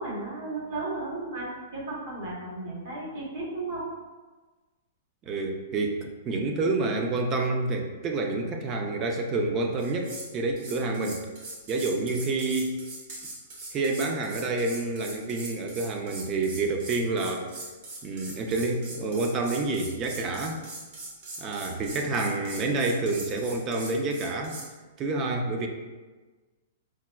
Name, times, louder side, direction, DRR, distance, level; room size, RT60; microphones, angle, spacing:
voice 1, 0.0-3.8, right 2 dB, 65° right, -5 dB, 1.1 m, -34 dB
voice 2, 5.3-11.2 11.7-12.8 13.7-17.5 18.0-20.6 21.4-24.6 25.0-25.7, right 3 dB, 25° right, 3 dB, 0.3 m, -28 dB
sound 1, 9.8-10.3 10.6-24.7, right 2 dB, 50° right, 0.9 m, -41 dB
4.6 x 2.1 x 2.2 m, 1.3 s
hypercardioid pair, 150°, 0 cm